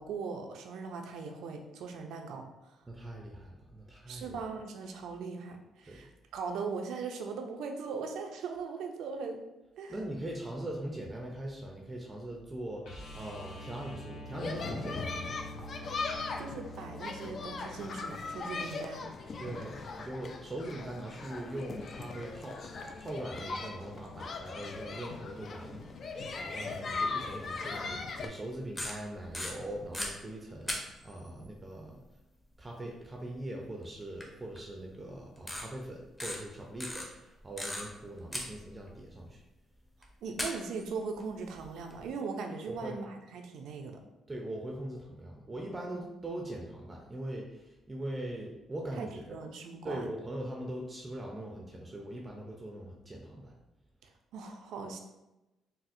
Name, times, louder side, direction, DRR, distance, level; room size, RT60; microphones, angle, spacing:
voice 1, 0.0-2.8 4.1-9.5 9.8-10.0 16.4-19.1 23.9-24.3 40.2-44.0 45.9-46.0 49.0-50.1 54.0-55.0, right 5 dB, 80° right, 4 dB, 0.4 m, -40 dB
voice 2, 2.9-4.4 5.9-6.0 9.9-15.5 19.4-32.1 32.6-39.4 42.7-43.0 44.3-49.4 49.8-53.5, right 1 dB, 20° right, 0 dB, 0.4 m, -41 dB
sound 1, 12.8-18.8 21.3-21.4, left 1 dB, 75° left, 0.8 m, -46 dB
sound 2, 14.3-28.3, left 4 dB, 50° left, 0.3 m, -39 dB
sound 3, 28.5-30.1 30.7-31.3 33.0-33.1 34.2-34.3 34.5-34.6 35.4-35.6 36.2-36.4 36.8-38.0 38.3-39.0 40.0-40.1 40.4-42.0, left 1 dB, 15° left, 0.7 m, -37 dB
4.1 x 2.0 x 2.5 m, 0.99 s
cardioid pair, 90°, 0 cm